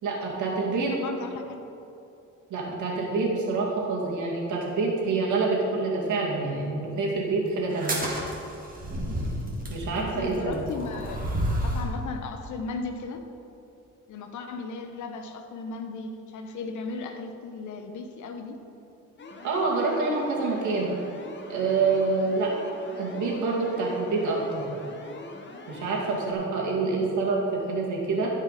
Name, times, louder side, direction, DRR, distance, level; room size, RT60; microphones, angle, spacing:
voice 1, 0.0-0.9 2.5-7.9 9.7-10.6 19.4-20.9 21.5-22.5 23.0-24.6 25.7-28.3, right 3 dB, 75° right, -3 dB, 2.3 m, -27 dB
voice 2, 0.8-1.7 9.9-13.3 14.1-18.6 26.9-27.1, left 4 dB, 75° left, 6 dB, 1.0 m, -36 dB
sound 1, 7.7-11.9, equal, 30° right, 2.1 m, -31 dB
sound 2, 19.2-26.3, left 2 dB, 40° left, 1.1 m, -43 dB
14.0 x 5.5 x 4.1 m, 2.8 s
cardioid pair, 90°, 30 cm